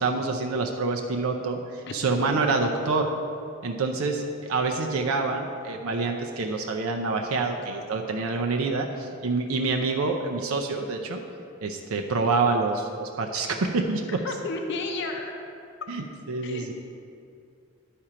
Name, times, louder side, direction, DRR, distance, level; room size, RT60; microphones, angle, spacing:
voice 1, 0.0-3.1 3.6-11.2 11.6-14.2 15.9-16.7, right 3 dB, 80° right, 3 dB, 0.6 m, -27 dB
voice 2, 8.7-9.0 13.7-13.8 14.2-15.3 16.4-16.7, left 3 dB, 55° left, 3 dB, 0.6 m, -33 dB
11.0 x 4.4 x 5.0 m, 2.4 s
head